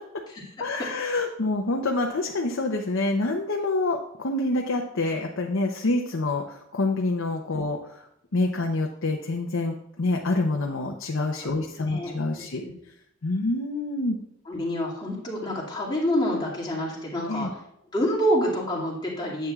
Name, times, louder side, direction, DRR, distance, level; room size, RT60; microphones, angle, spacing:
voice 1, 0.6-8.0 8.3-12.6 13.2-14.2 17.3-17.5, left 2 dB, 85° left, 2 dB, 0.7 m, -27 dB
voice 2, 11.4-12.2 12.6-12.8 14.5-17.5 17.9-19.5, equal, 25° left, -5 dB, 2.3 m, -27 dB
9.8 x 7.8 x 2.4 m, 0.75 s
head